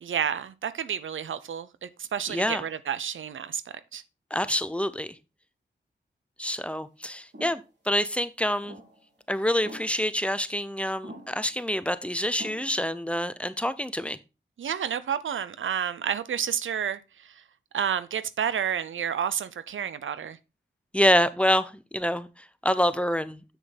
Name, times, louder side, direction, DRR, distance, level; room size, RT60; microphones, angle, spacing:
voice 1, 0.0-3.6 3.9-4.0 14.6-17.0 17.7-20.4, right 8 dB, 90° right, 0.6 m, -30 dB
voice 2, 2.3-2.6 4.3-5.2 6.4-8.8 9.3-14.2 20.9-23.4, equal, 5° left, 0.8 m, -27 dB
sound 1, 7.3-7.6 8.6-9.1 9.6-10.2 11.0-11.5 12.4-12.9, equal, 60° right, 4.8 m, -45 dB
7.5 x 6.5 x 3.9 m
cardioid pair, 45°, 20 cm